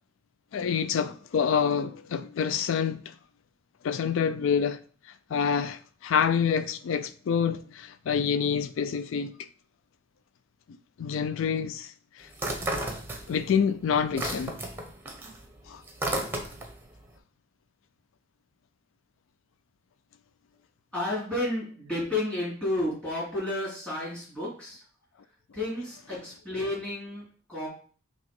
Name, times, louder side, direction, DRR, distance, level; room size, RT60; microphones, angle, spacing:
voice 1, 0.5-3.1 3.8-4.8 5.3-9.3 11.0-12.3 13.3-14.6 15.7-15.8, left 7 dB, 70° left, 0.3 m, -27 dB
sound 1, 12.3-13.6 13.9-16.8, right 1 dB, 10° right, 0.9 m, -33 dB
voice 2, 20.9-24.8 25.5-27.7, left 1 dB, 5° left, 3.1 m, -31 dB
6.3 x 3.0 x 5.2 m
head